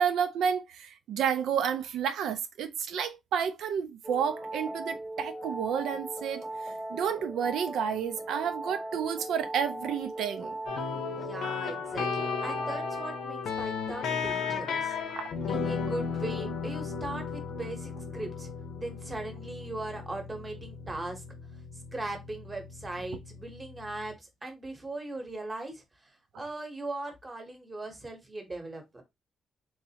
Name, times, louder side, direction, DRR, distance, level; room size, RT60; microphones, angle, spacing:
voice 1, 0.0-10.6 15.1-15.3, right 8 dB, 90° right, 0.5 m, -30 dB
sound 1, 4.0-13.3, right 1 dB, ahead, 0.4 m, -39 dB
sound 2, 10.7-24.1, left 6 dB, 85° left, 0.8 m, -35 dB
voice 2, 11.1-15.0 15.5-18.5 18.7-21.2 21.9-29.0, right 2 dB, 15° right, 0.9 m, -39 dB
3.6 x 3.1 x 2.8 m
wide cardioid pair, 165°, 0 cm